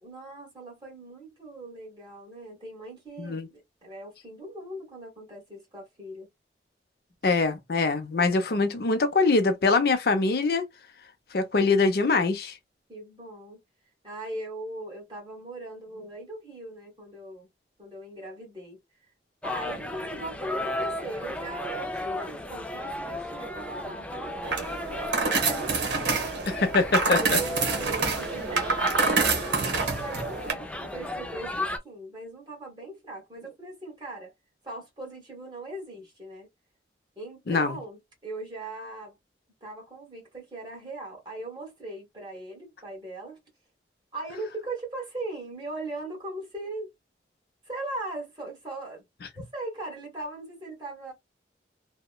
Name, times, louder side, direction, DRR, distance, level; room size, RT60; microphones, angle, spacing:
voice 1, 0.0-6.3 12.9-13.6 14.0-17.5 17.8-18.8 19.4-26.3 26.9-34.3 34.6-36.5 37.2-39.2 39.6-43.4 44.1-46.9 47.6-49.0 49.3-51.1, right 2 dB, 25° right, 1.3 m, -39 dB
voice 2, 7.2-10.6 11.3-12.5 26.5-27.2 37.5-37.8, left 3 dB, 60° left, 0.5 m, -23 dB
sound 1, 19.4-31.8, left 1 dB, 5° left, 0.3 m, -35 dB
sound 2, 24.4-30.5, right 4 dB, 90° right, 1.0 m, -27 dB
2.8 x 2.1 x 2.2 m
head